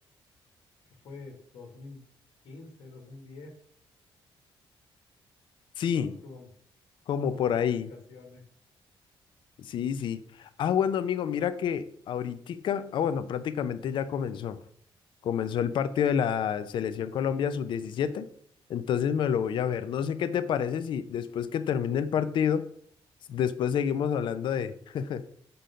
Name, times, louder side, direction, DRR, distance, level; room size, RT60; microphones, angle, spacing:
voice 1, 1.0-2.0 2.4-3.5 5.9-6.5 7.2-8.4, left 3 dB, 80° left, 2 dB, 1.7 m, -47 dB
voice 2, 5.8-6.2 7.1-7.9 9.6-14.6 15.2-18.3 18.7-22.7 23.3-25.2, left 8 dB, 60° left, 12 dB, 0.5 m, -28 dB
6.7 x 3.9 x 5.5 m, 0.63 s
cardioid pair, 160°, 9 cm